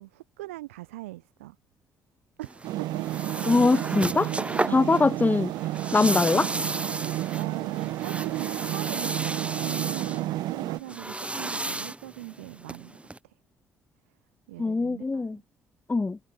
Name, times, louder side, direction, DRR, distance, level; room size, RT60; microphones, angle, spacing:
voice 1, 0.0-1.6 2.4-3.0 3.7-3.9 4.6-5.1 7.4-13.3 14.5-15.4, right 18 dB, 80° right, 3.1 m, -41 dB
Chair Sliding on Carpet, 2.4-13.2, right 2 dB, 15° right, 5.9 m, -34 dB
sound 1, 2.6-10.8, right 16 dB, 65° right, 0.7 m, -31 dB
voice 2, 3.5-4.3 4.7-5.5 5.9-6.5 14.6-15.4 15.9-16.2, left 3 dB, 25° left, 1.2 m, -22 dB
figure-of-eight pair, 45°, 7 cm